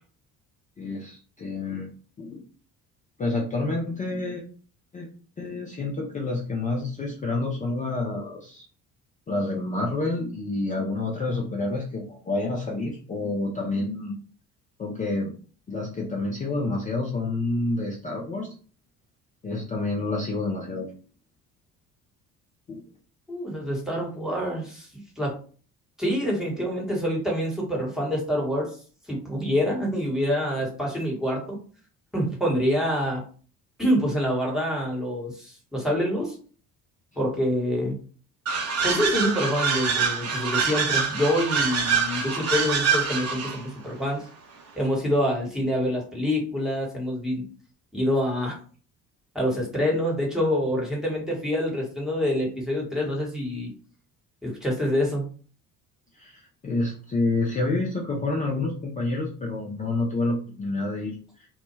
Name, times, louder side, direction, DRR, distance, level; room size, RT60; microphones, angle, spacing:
voice 1, 0.8-1.9 2.2-2.4 3.2-4.4 4.9-5.1 5.4-8.6 9.3-14.2 14.8-15.3 15.7-18.5 19.4-20.9 22.7-22.8 56.1-61.5, left 2 dB, 20° left, -2 dB, 0.5 m, -28 dB
voice 2, 23.3-24.9 25.2-25.4 26.0-28.7 29.1-31.6 32.1-33.2 33.8-36.3 37.2-38.0 38.8-44.3 44.8-47.5 47.9-48.6 49.3-53.7 54.4-55.3, equal, ahead, -2 dB, 1.1 m, -26 dB
sound 1, 38.5-43.6, right 5 dB, 35° right, 0.7 m, -25 dB
2.1 x 2.0 x 3.1 m, 0.41 s
figure-of-eight pair, 50°, 46 cm